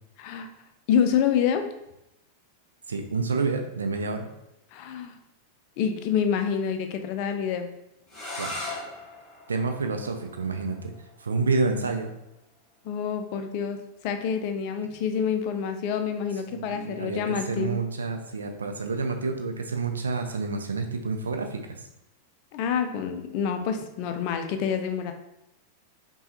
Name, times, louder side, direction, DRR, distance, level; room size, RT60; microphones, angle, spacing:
voice 1, 0.2-0.5 0.9-1.7 4.7-5.1 5.8-7.7 12.8-13.8 14.0-17.8 22.5-25.1, left 7 dB, 45° left, 7 dB, 0.5 m, -27 dB
voice 2, 2.9-4.3 8.4-8.7 9.5-10.9 11.2-12.1 16.5-21.9, right 4 dB, 70° right, 5 dB, 0.5 m, -29 dB
sound 1, 8.1-13.8, left 2 dB, 20° left, 1.1 m, -41 dB
5.4 x 2.3 x 2.8 m, 0.86 s
figure-of-eight pair, 90°, 0 cm